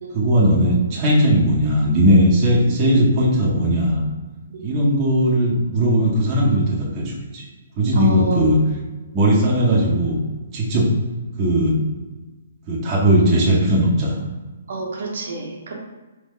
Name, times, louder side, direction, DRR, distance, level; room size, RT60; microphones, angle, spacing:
voice 1, 0.1-4.0 4.6-7.4 7.8-8.6 9.1-10.2 10.5-10.9 11.4-11.8 12.7-14.2, equal, 20° right, -5 dB, 0.8 m, -18 dB
voice 2, 7.9-8.5 14.7-15.7, right 3 dB, 60° right, -1 dB, 1.0 m, -29 dB
3.6 x 2.9 x 4.2 m, 1.2 s
hypercardioid pair, 170°, 0 cm